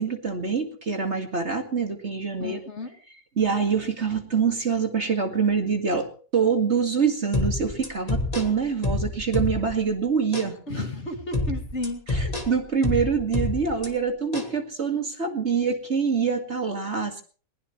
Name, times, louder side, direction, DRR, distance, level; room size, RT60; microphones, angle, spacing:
voice 1, 0.0-2.6 3.4-10.8 12.1-17.2, right 6 dB, 40° right, 4 dB, 2.3 m, -25 dB
voice 2, 2.4-2.9 10.7-12.0, left 1 dB, 40° left, 2 dB, 2.7 m, -32 dB
sound 1, 7.3-9.9 10.3-10.5 11.3-13.9 14.3-14.5, left 2 dB, 20° left, 2.1 m, -28 dB
21.5 x 20.0 x 3.2 m, 0.40 s
omnidirectional pair, 1.8 m